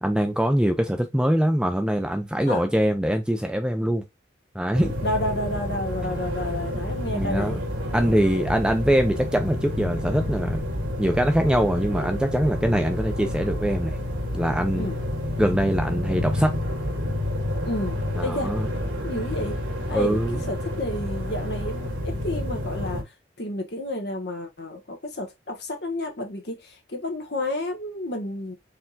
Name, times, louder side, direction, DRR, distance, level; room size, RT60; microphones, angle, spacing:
voice 1, 0.0-4.0 4.5-4.9 7.1-7.6 7.9-10.6 11.0-14.0 14.3-14.9 15.4-16.5 18.2-18.7 19.9-20.4, equal, 5° right, 0.5 m, -23 dB
sound 1, 4.7-23.0, left 1 dB, 90° right, 1.7 m, -29 dB
voice 2, 5.0-7.6 14.7-15.0 17.6-18.5 19.0-19.6 19.9-20.2 20.5-23.0 23.4-28.5, left 1 dB, 60° left, 1.4 m, -30 dB
4.5 x 3.6 x 2.4 m
head